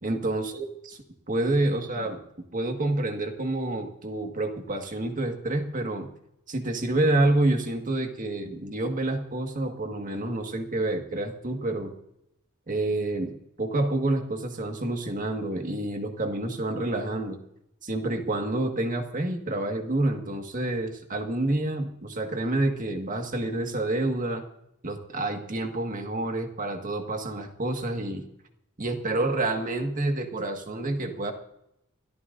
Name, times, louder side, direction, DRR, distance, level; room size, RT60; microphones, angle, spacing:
voice 1, 0.0-1.0 1.3-2.2 2.5-6.1 6.5-11.9 12.7-17.4 17.8-24.4 24.8-28.2 28.8-31.3, right 2 dB, 40° right, 4 dB, 1.8 m, -28 dB
28.5 x 13.5 x 2.6 m, 0.81 s
head